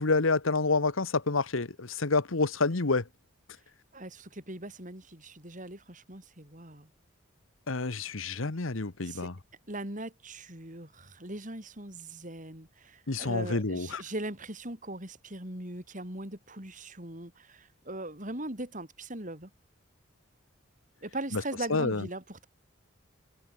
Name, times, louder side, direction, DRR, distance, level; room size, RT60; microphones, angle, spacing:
voice 1, 0.0-3.0 7.7-9.3 13.1-14.0 21.3-21.4 21.7-22.0, left 3 dB, 80° left, 1.3 m, -28 dB
voice 2, 3.9-6.9 9.0-9.3 9.7-19.5 21.0-22.5, right 1 dB, 40° right, 6.7 m, -40 dB
head